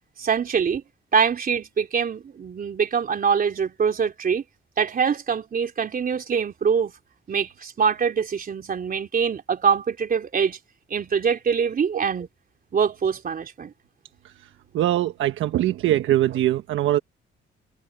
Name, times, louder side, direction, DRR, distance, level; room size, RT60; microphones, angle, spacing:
voice 1, 0.2-0.8 1.1-4.4 4.8-6.9 7.3-10.6 10.9-12.3 12.7-13.7, right 6 dB, 45° right, 3.6 m, -24 dB
voice 2, 14.7-17.0, right 13 dB, 80° right, 1.2 m, -22 dB
cardioid pair, 90°, 20 cm